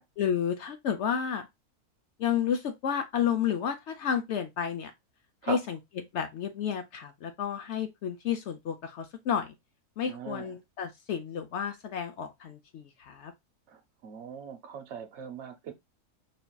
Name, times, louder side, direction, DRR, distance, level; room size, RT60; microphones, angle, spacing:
voice 1, 0.2-1.5 2.2-4.9 5.4-5.8 6.1-9.5 10.0-13.3, left 8 dB, 65° left, 0.7 m, -31 dB
voice 2, 10.1-10.6 13.7-15.7, right 7 dB, 55° right, 1.0 m, -40 dB
5.1 x 2.8 x 2.2 m
omnidirectional pair, 1.6 m